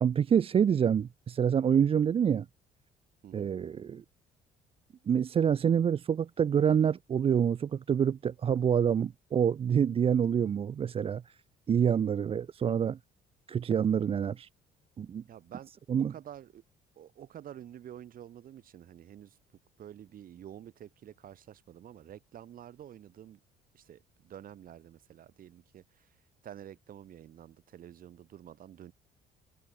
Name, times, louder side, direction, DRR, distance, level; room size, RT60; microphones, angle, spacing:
voice 1, 0.0-2.5 3.3-4.0 5.1-11.2 11.7-13.0 13.5-14.5 15.0-15.2 15.9-16.1, right 8 dB, 35° right, 0.6 m, -27 dB
voice 2, 15.3-15.7 16.0-16.6 17.0-19.4 19.8-23.4 23.7-26.2 26.4-28.9, right 10 dB, 55° right, 7.5 m, -49 dB
cardioid pair, 110°, 17 cm